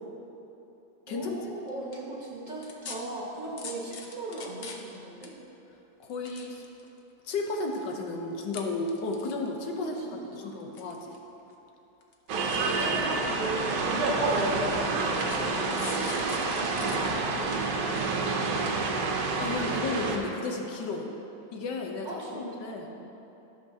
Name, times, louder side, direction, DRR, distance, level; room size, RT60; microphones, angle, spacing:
voice 1, 1.1-5.3 9.8-10.6 12.3-16.0 16.4-19.1 22.0-23.1, right 2 dB, 30° right, -4 dB, 1.2 m, -39 dB
sound 1, 1.7-1.9 2.6-3.0 3.6-5.0 5.2-5.3 6.0-7.0 7.5-7.9 8.4-8.6 8.9-9.6 10.4-11.2 11.5-11.6 12.0-12.1 12.5-12.6 13.4-13.5 14.2-14.3 15.2-17.0 17.4-17.5, left 5 dB, 55° left, 0.6 m, -42 dB
voice 2, 6.0-6.6 7.2-10.0 10.3-11.2 19.4-21.1 21.5-22.1 22.3-22.9, left 3 dB, 85° left, 2 dB, 1.5 m, -33 dB
sound 2, 12.3-20.2, right 3 dB, 90° right, 1.4 m, -28 dB
13.0 x 6.4 x 2.8 m, 3.0 s
omnidirectional pair, 1.8 m